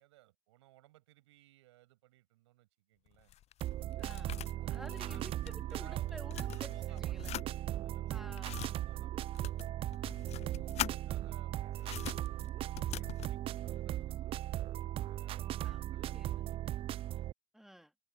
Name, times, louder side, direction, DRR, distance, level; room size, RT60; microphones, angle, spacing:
voice 1, 0.0-3.3 4.5-5.3 5.6-7.3 7.7-10.1 10.5-14.8 15.1-16.8, right 17 dB, 70° right, 6.6 m, -63 dB
sound 1, 3.1-5.8 6.1-7.5 8.1-8.7 9.3-11.0 11.7-13.4, left 12 dB, 45° left, 0.9 m, -43 dB
sound 2, 3.6-17.3, right 13 dB, 40° right, 0.3 m, -38 dB
voice 2, 4.0-4.4 4.7-7.4 8.1-8.8 15.6-16.4 17.5-17.9, equal, ahead, 2.8 m, -52 dB
figure-of-eight pair, 55°, 15 cm